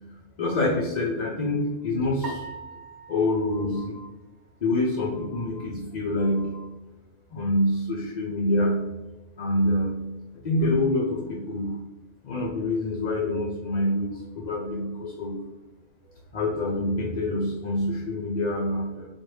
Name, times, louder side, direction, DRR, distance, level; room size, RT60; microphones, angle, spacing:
voice 1, 0.4-2.4 3.1-4.1 4.6-6.7 7.3-8.8 9.4-10.0 10.4-11.8 12.2-15.4 16.3-19.1, left 1 dB, 55° left, -5 dB, 0.5 m, -26 dB
sound 1, 2.2-4.7, right 4 dB, 45° right, 0.6 m, -42 dB
4.5 x 2.5 x 3.2 m, 1.1 s
omnidirectional pair, 1.5 m